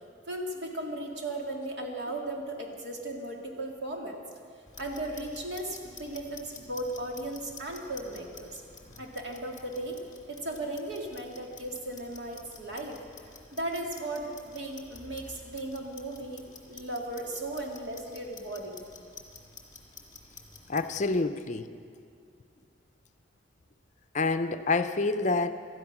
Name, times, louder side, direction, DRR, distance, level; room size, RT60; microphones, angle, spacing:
voice 1, 0.3-4.2 4.8-8.6 9.0-10.0 10.3-13.0 13.5-18.8, right 1 dB, 70° right, 1 dB, 2.3 m, -36 dB
Clock, 4.7-21.2, left 4 dB, 20° left, 2.0 m, -51 dB
voice 2, 20.7-21.7 24.1-25.5, left 3 dB, 40° left, 10 dB, 0.6 m, -27 dB
18.5 x 13.0 x 6.0 m, 2.3 s
head